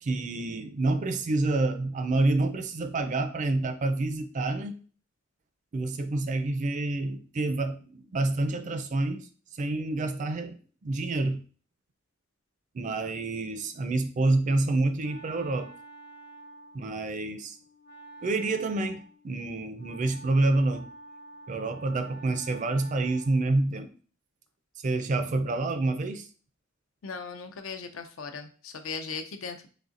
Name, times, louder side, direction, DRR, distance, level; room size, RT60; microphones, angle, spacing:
voice 1, 0.0-4.8 5.7-9.3 9.5-11.4 12.7-15.7 16.7-17.6 18.2-20.9 21.5-23.9 24.8-26.3, right 2 dB, 40° right, 8 dB, 0.4 m, -28 dB
Wind instrument woodwind instrument, 14.5-23.6, right 2 dB, 45° left, 0.9 m, -49 dB
voice 2, 27.0-29.7, left 5 dB, 80° left, 7 dB, 0.5 m, -38 dB
4.0 x 3.4 x 2.5 m, 0.39 s
head